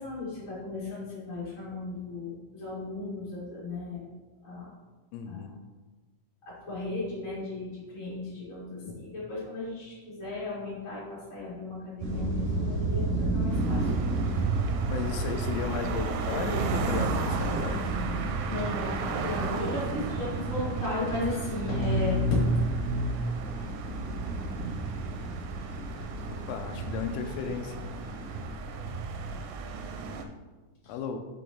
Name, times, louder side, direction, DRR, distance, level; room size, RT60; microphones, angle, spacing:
voice 1, 0.0-4.0 4.4-4.7 5.2-5.4 6.7-14.1 18.5-22.3 22.7-23.1 30.8-30.9, left 2 dB, 50° left, -9 dB, 0.9 m, -34 dB
voice 2, 5.1-5.5 13.4-13.9 14.3-14.5 14.9-17.9 26.5-27.9 30.9-31.2, left 6 dB, 90° left, 6 dB, 3.2 m, -35 dB
sound 1, 12.0-28.4, right 3 dB, 60° right, 2.4 m, -33 dB
sound 2, 13.5-30.2, right 4 dB, 80° right, 3.0 m, -35 dB
7.6 x 4.9 x 3.8 m, 1.2 s
omnidirectional pair, 5.7 m